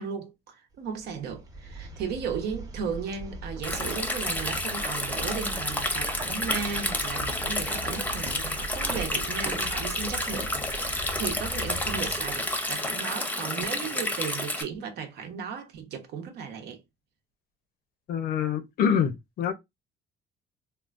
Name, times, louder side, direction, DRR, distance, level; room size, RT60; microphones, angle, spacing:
voice 1, 0.0-16.8, right 6 dB, 75° right, 0.9 m, -35 dB
sound 1, 0.9-13.0, right 2 dB, 20° right, 0.8 m, -40 dB
Stream, 3.6-14.6, left 1 dB, 10° left, 0.6 m, -30 dB
voice 2, 18.1-19.5, left 7 dB, 65° left, 0.6 m, -26 dB
3.6 x 2.3 x 2.4 m
cardioid pair, 110°, 17 cm